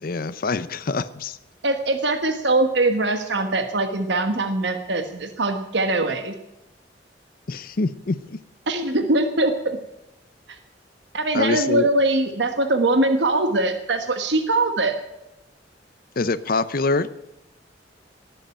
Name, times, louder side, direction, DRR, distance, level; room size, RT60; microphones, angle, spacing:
voice 1, 0.0-1.4 7.5-8.4 11.3-11.9 16.2-17.1, left 3 dB, 55° left, 15 dB, 0.6 m, -25 dB
voice 2, 1.6-6.3 8.7-9.8 11.1-15.0, right 2 dB, 75° right, 7 dB, 1.3 m, -22 dB
18.5 x 7.8 x 8.8 m, 0.92 s
head